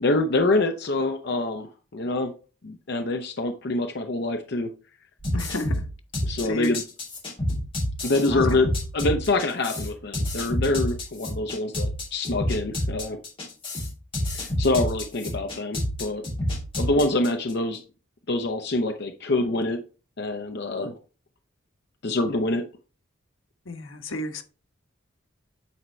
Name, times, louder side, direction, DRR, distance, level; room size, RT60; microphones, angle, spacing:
voice 1, 0.0-2.3 2.6-4.7 6.2-6.8 8.0-8.7 8.9-13.2 14.6-16.2 16.8-17.8 18.3-19.8 20.2-20.9 22.0-22.6, left 2 dB, 55° left, 0.6 m, -25 dB
sound 1, 5.2-17.5, left 1 dB, 30° left, 2.7 m, -28 dB
voice 2, 5.3-5.8 6.4-6.8 8.3-8.5 23.7-24.4, left 1 dB, 85° left, 1.1 m, -32 dB
8.4 x 4.4 x 3.1 m
head